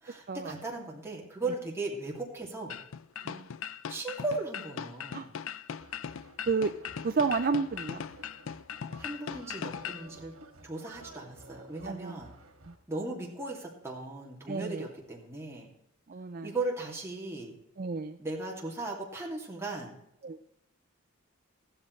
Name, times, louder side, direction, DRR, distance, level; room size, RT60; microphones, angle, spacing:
voice 1, 0.0-2.8 3.9-5.3 9.0-10.3 10.6-12.3 12.9-15.7 16.4-17.5 18.2-19.9, right 2 dB, 10° right, -2 dB, 2.5 m, -37 dB
sound 1, 2.7-10.1, left 7 dB, 65° left, 0.5 m, -39 dB
sound 2, 5.8-12.8, right 2 dB, 85° right, 2.0 m, -53 dB
voice 2, 7.0-8.0 11.8-12.2 12.7-12.8 14.5-14.9 16.1-16.5 17.8-18.2 20.2-20.4, right 4 dB, 40° right, 9 dB, 0.5 m, -31 dB
14.5 x 12.5 x 3.2 m, 0.81 s
head